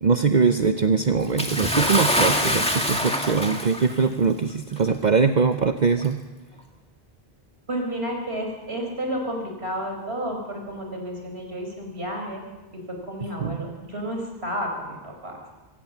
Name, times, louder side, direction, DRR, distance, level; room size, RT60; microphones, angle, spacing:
voice 1, 0.0-6.2 13.2-13.6, right 5 dB, 45° right, 7 dB, 0.9 m, -22 dB
Bathtub (filling or washing) / Splash splatter, 1.4-4.0 4.9-5.0 6.0-6.1, equal, 5° left, 2.0 m, -24 dB
voice 2, 7.7-12.4 12.9-15.3, equal, 75° right, 2 dB, 4.8 m, -31 dB
24.0 x 17.5 x 7.2 m, 1.2 s
omnidirectional pair, 1.1 m